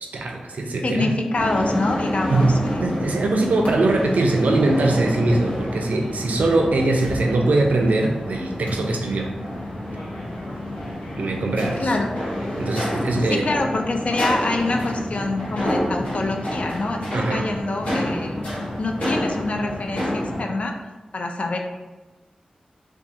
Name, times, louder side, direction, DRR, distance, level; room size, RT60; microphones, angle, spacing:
voice 1, 0.0-1.1 2.3-2.5 2.8-9.3 11.2-11.9 12.6-13.5 17.1-17.5, right 2 dB, 85° right, 1 dB, 0.4 m, -22 dB
voice 2, 0.8-3.0 11.8-12.1 13.3-18.4 18.8-20.7 21.1-21.6, left 2 dB, 55° left, 3 dB, 0.3 m, -26 dB
sound 1, 1.3-20.4, left 1 dB, 80° left, 0.9 m, -28 dB
2.4 x 2.3 x 2.7 m, 1.2 s
wide cardioid pair, 75°, 3 cm